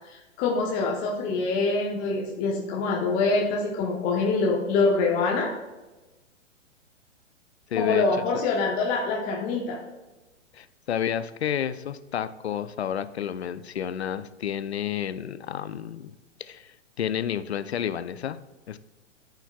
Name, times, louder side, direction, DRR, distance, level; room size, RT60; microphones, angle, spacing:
voice 1, 0.1-5.5 7.8-9.8, left 3 dB, 20° left, -2 dB, 1.0 m, -25 dB
voice 2, 7.7-8.1 10.5-16.1 16.4-16.7 17.0-18.4 18.7-18.8, left 9 dB, 60° left, 13 dB, 0.6 m, -30 dB
14.0 x 5.8 x 2.3 m, 1.1 s
figure-of-eight pair, 115°, 37 cm